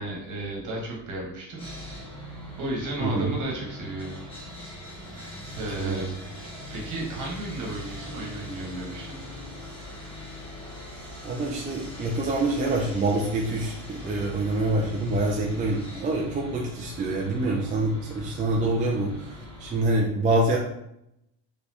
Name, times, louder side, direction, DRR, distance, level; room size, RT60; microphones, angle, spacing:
voice 1, 0.0-1.7 2.6-4.1 5.1-6.1 6.7-9.2, right 2 dB, 45° right, -1 dB, 1.5 m, -33 dB
Sawing, 1.6-19.8, left 1 dB, 15° left, 1.2 m, -41 dB
voice 2, 3.0-3.3 5.1-5.2 5.8-6.1 11.2-20.6, right 2 dB, 20° right, -1 dB, 0.4 m, -26 dB
4.3 x 3.4 x 2.9 m, 0.79 s
cardioid pair, 150°, 41 cm